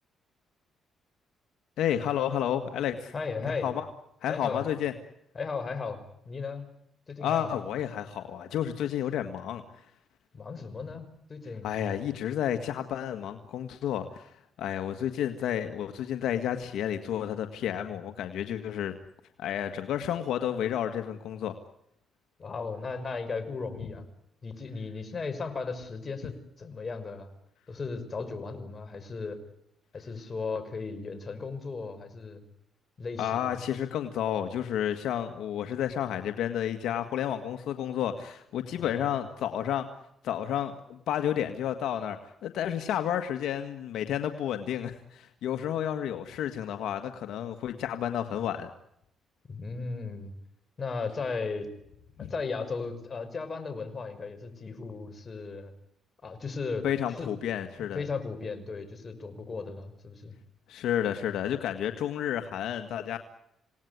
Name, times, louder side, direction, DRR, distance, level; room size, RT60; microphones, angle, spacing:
voice 1, 1.8-3.1 3.6-3.8 4.2-4.9 7.2-9.6 11.6-14.3 14.6-18.9 19.4-21.5 33.2-39.9 40.2-42.2 42.4-48.7 52.2-52.3 56.8-58.0 60.7-63.2, left 10 dB, 80° left, 7 dB, 1.8 m, -31 dB
voice 2, 3.1-3.7 4.3-4.7 5.3-6.7 7.1-7.6 10.3-11.7 22.4-24.1 24.4-27.3 27.7-29.4 29.9-32.4 33.0-33.5 38.8-39.1 49.5-50.3 50.8-51.7 52.2-55.7 56.2-57.3 57.9-60.3, left 4 dB, 35° left, 8 dB, 5.8 m, -36 dB
28.0 x 19.0 x 9.6 m, 0.79 s
cardioid pair, 90°, 0 cm